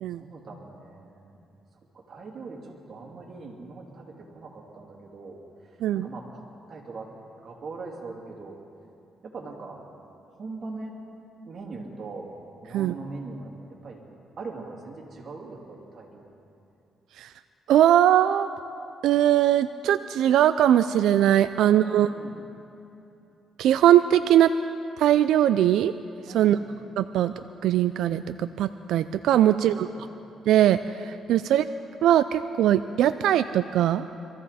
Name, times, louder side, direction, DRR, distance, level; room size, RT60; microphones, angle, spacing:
voice 1, 0.2-1.4 1.9-7.1 7.4-8.6 9.2-9.8 10.3-11.0 11.4-12.3 12.6-14.0 14.4-16.4 21.5-22.4 26.3-26.6 29.4-30.1, right 3 dB, 50° right, -1 dB, 3.0 m, -41 dB
voice 2, 17.7-18.5 19.0-22.1 23.6-24.5 25.0-25.9 26.3-26.6 27.0-27.3 27.6-29.9 30.5-31.7 32.0-34.0, right 11 dB, 80° right, 11 dB, 0.3 m, -20 dB
23.5 x 14.5 x 4.2 m, 2.8 s
cardioid pair, 90°, 0 cm